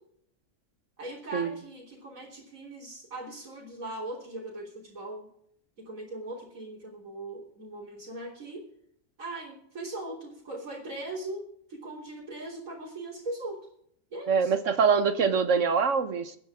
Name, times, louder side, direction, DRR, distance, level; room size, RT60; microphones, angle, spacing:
voice 1, 1.0-5.3 5.8-8.6 9.2-11.4 11.7-13.7 14.1-14.5, right 2 dB, 85° right, -4 dB, 3.8 m, -39 dB
voice 2, 14.3-16.4, right 5 dB, 65° right, 11 dB, 1.4 m, -24 dB
23.0 x 9.7 x 3.7 m, 0.67 s
omnidirectional pair, 1.4 m